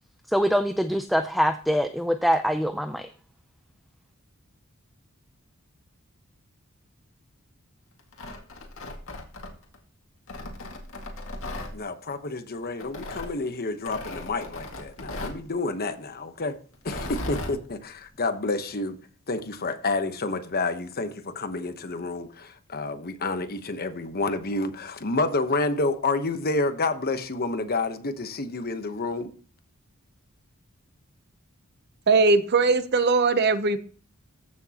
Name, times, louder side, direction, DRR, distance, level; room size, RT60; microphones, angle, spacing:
voice 1, 0.3-3.1, equal, ahead, 0.5 m, -24 dB
Tearing, 8.0-9.8 10.3-11.7 12.8-13.3 13.9-15.4 16.7-17.6, left 1 dB, 65° left, 2.1 m, -36 dB
voice 2, 11.7-16.6 16.8-19.0 19.3-29.3, left 3 dB, 45° left, 1.0 m, -29 dB
voice 3, 32.1-33.8, right 4 dB, 50° right, 0.8 m, -20 dB
15.0 x 6.3 x 2.9 m
head